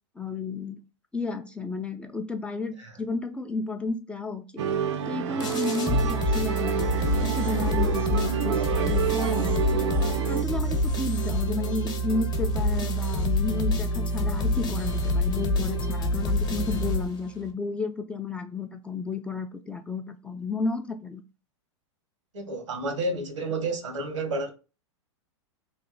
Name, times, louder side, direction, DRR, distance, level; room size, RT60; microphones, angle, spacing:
voice 1, 0.2-0.8 1.1-4.6 5.1-9.8 10.3-21.2, left 4 dB, 5° left, 0.4 m, -32 dB
Musical instrument, 4.6-10.5, right 8 dB, 70° right, 0.5 m, -29 dB
sound 1, 5.4-17.5, equal, 25° left, 0.9 m, -27 dB
voice 2, 22.3-24.5, right 2 dB, 85° right, 0.9 m, -30 dB
3.2 x 2.2 x 3.8 m
hypercardioid pair, 110°, 15 cm